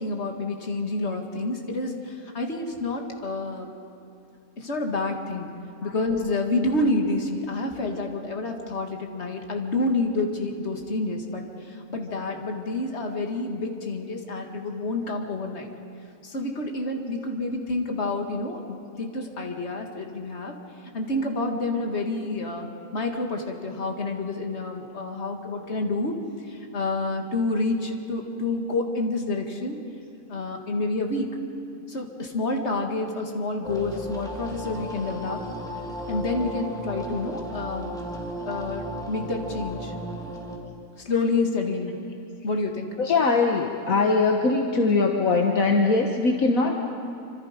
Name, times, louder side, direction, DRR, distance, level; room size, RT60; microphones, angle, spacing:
voice 1, 0.0-3.7 4.6-5.5 5.8-15.7 16.2-20.5 20.9-26.1 26.5-29.8 30.3-31.3 31.9-35.4 36.1-37.9 38.5-39.9 41.0-42.0 42.4-42.9, left 2 dB, 45° left, 3 dB, 2.3 m, -28 dB
sound 1, 33.6-40.6, equal, ahead, 2.4 m, -35 dB
voice 2, 43.0-46.8, left 3 dB, 65° left, 2 dB, 1.7 m, -21 dB
27.0 x 26.0 x 5.2 m, 2.8 s
omnidirectional pair, 1.6 m